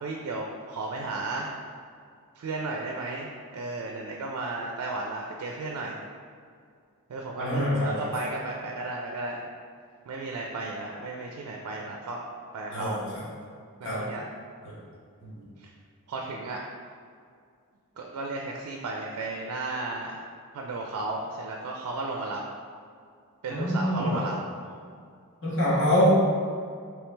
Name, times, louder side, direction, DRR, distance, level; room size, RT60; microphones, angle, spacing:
voice 1, 0.0-1.5 2.4-6.0 7.1-9.5 10.1-12.2 12.5-13.0 13.8-14.2 15.6-15.7 16.1-16.6 18.0-20.2 20.5-22.4 23.4-24.4, right 2 dB, 85° right, 0 dB, 0.4 m, -34 dB
voice 2, 7.4-7.9 12.7-13.0 13.8-14.0 14.6-14.7 15.2-15.3 23.5-24.3 25.4-26.2, equal, 55° left, -6 dB, 1.0 m, -24 dB
3.2 x 3.1 x 3.2 m, 2.2 s
head